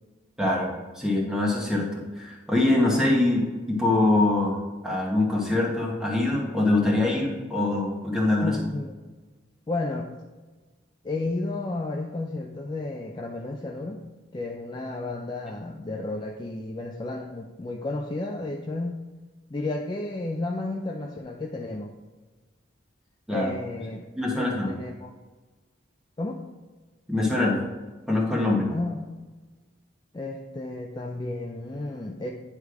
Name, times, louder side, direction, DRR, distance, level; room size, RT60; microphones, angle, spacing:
voice 1, 0.4-1.9 2.2-4.6 4.8-8.6 23.3-23.5 24.1-24.8 27.1-27.6 28.1-28.7, left 2 dB, 5° right, -3 dB, 1.3 m, -23 dB
voice 2, 8.4-8.9 9.7-10.1 11.0-14.0 14.3-19.0 19.5-21.9 23.3-24.0 24.3-25.1 26.2-26.4 28.7-29.0 30.1-32.3, left 2 dB, 25° left, 1 dB, 0.4 m, -32 dB
9.8 x 3.4 x 4.7 m, 1.3 s
head